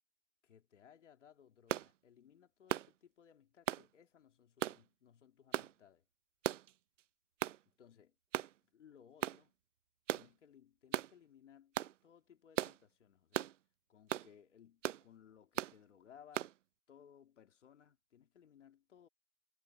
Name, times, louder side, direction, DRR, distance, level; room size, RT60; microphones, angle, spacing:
voice 1, 0.4-6.0 7.7-8.2 8.6-9.5 10.1-11.8 12.0-13.5 13.9-16.5 16.9-19.1, left 8 dB, 80° left, 2.8 m, -63 dB
sound 1, 1.7-1.9 2.7-2.9 3.7-3.9 4.6-4.8 5.5-5.7 6.4-6.7 7.4-7.6 8.3-8.5 9.2-9.4 10.1-10.3 10.9-11.1 11.7-11.9 12.6-12.8 13.3-13.5 14.1-14.3 14.8-15.0 15.6-15.7 16.3-16.5, right 12 dB, 90° right, 0.7 m, -37 dB
hypercardioid pair, 165°, 36 cm